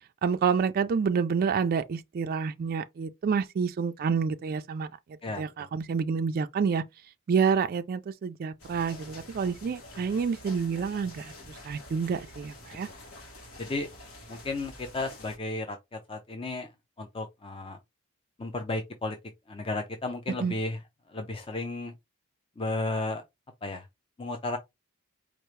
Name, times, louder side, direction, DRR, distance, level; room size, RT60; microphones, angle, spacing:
voice 1, 0.2-4.9 5.4-6.8 7.3-12.9 20.4-20.6, right 6 dB, 45° right, 0.3 m, -28 dB
voice 2, 5.2-5.7 13.6-13.9 14.3-15.8 16.1-16.7 17.0-17.8 18.4-19.2 19.5-20.8 21.1-21.9 22.6-23.2 23.6-23.8 24.2-24.6, left 2 dB, 25° left, 0.5 m, -33 dB
sound 1, 8.6-15.4, left 1 dB, 70° left, 1.4 m, -47 dB
4.6 x 2.4 x 3.1 m
head